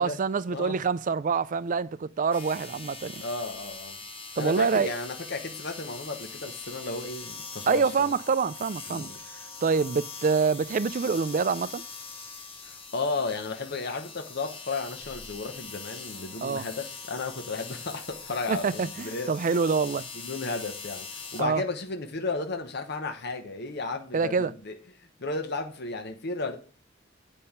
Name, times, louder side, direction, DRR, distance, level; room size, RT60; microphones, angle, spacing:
voice 1, 0.0-3.2 4.4-4.9 7.7-9.1 9.6-11.8 16.4-16.7 18.5-20.1 21.4-21.6 24.1-24.5, right 5 dB, 45° right, 0.4 m, -26 dB
sound 1, 2.3-21.4, left 4 dB, 30° left, 1.3 m, -42 dB
voice 2, 3.2-4.0 4.4-8.1 8.9-9.2 12.6-19.3 20.1-24.8 25.2-26.6, left 3 dB, 60° left, 1.1 m, -34 dB
8.5 x 5.5 x 5.7 m
head